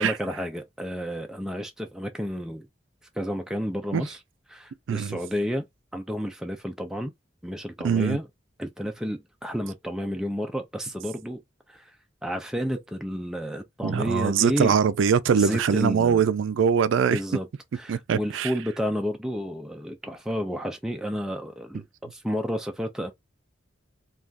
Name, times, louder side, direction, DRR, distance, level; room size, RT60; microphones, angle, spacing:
voice 1, 0.0-2.7 3.1-4.2 4.5-5.6 5.9-7.1 7.4-8.3 8.6-11.4 11.7-11.9 12.2-14.8 15.3-16.2 17.1-17.5 17.7-23.1, equal, 5° right, 0.3 m, -31 dB
voice 2, 7.8-8.2 13.8-17.2 17.9-18.5, right 7 dB, 80° right, 0.4 m, -22 dB
3.3 x 2.3 x 2.4 m
head